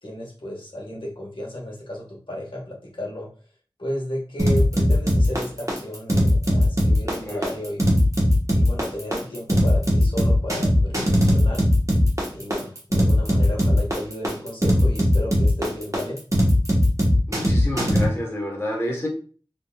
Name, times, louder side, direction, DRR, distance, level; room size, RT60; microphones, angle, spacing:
voice 1, 0.0-3.3 3.8-7.9 8.5-11.7 12.3-16.2, left 1 dB, 75° left, -2 dB, 1.4 m, -33 dB
sound 1, 4.4-18.0, equal, 35° right, 1.1 m, -19 dB
voice 2, 17.3-19.1, left 1 dB, 30° left, -3 dB, 1.1 m, -29 dB
3.7 x 3.6 x 2.3 m, 0.40 s
wide cardioid pair, 50°, 9 cm